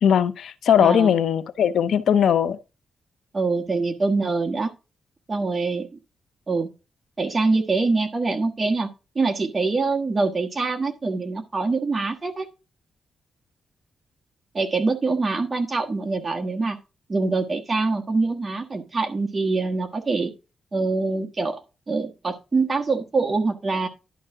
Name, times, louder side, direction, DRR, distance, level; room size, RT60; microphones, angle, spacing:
voice 1, 0.0-2.6, left 8 dB, 75° left, 0.6 m, -19 dB
voice 2, 0.8-1.2 3.3-4.7 5.3-5.9 6.5-6.7 7.2-8.9 9.1-12.5 14.5-16.8 17.1-20.3 20.7-21.6 21.9-23.9, right 3 dB, 25° right, 1.3 m, -24 dB
11.0 x 5.6 x 3.7 m
wide cardioid pair, 130°, 0 cm